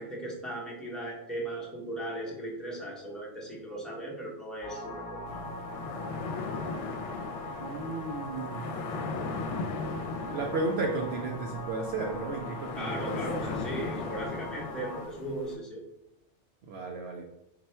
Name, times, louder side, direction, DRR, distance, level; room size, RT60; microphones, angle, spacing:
voice 1, 0.0-5.5 12.8-15.8, right 1 dB, ahead, -3 dB, 0.8 m, -37 dB
sound 1, 4.6-15.1, left 2 dB, 50° left, 1.0 m, -41 dB
sound 2, 5.3-15.6, left 4 dB, 75° left, 0.9 m, -38 dB
voice 2, 7.6-8.8 10.3-13.6 16.7-17.2, right 3 dB, 65° right, 1 dB, 0.8 m, -34 dB
4.2 x 2.2 x 4.3 m, 0.84 s
omnidirectional pair, 1.2 m